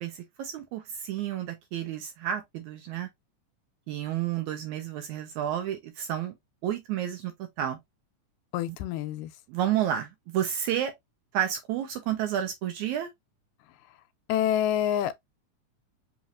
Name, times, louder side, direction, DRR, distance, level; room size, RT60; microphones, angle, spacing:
voice 1, 0.0-3.1 3.9-6.4 6.6-7.3 7.6-7.8 8.7-8.8 9.5-10.9 11.3-13.1, right 10 dB, 80° right, 1.9 m, -30 dB
voice 2, 8.5-9.3 14.3-15.2, left 11 dB, 85° left, 2.2 m, -27 dB
5.7 x 3.0 x 2.5 m
omnidirectional pair, 3.8 m